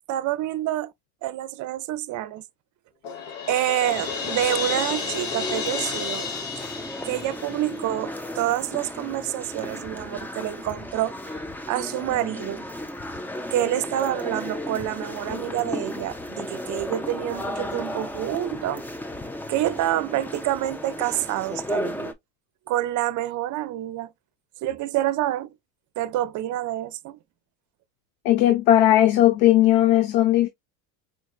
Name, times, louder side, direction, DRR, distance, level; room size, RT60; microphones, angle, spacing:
voice 1, 0.1-0.9 1.2-2.4 3.5-6.3 7.0-11.4 11.7-12.7 13.5-18.8 19.5-22.1 22.7-24.1 24.6-25.5 26.0-27.2, right 13 dB, 45° right, 0.6 m, -27 dB
Crash cymbal, 3.0-8.0, left 5 dB, 75° left, 1.7 m, -31 dB
sound 1, 3.9-22.1, left 1 dB, 5° left, 0.3 m, -34 dB
voice 2, 28.2-30.5, left 13 dB, 90° left, 0.7 m, -17 dB
4.5 x 3.1 x 2.4 m
cardioid pair, 120°, 41 cm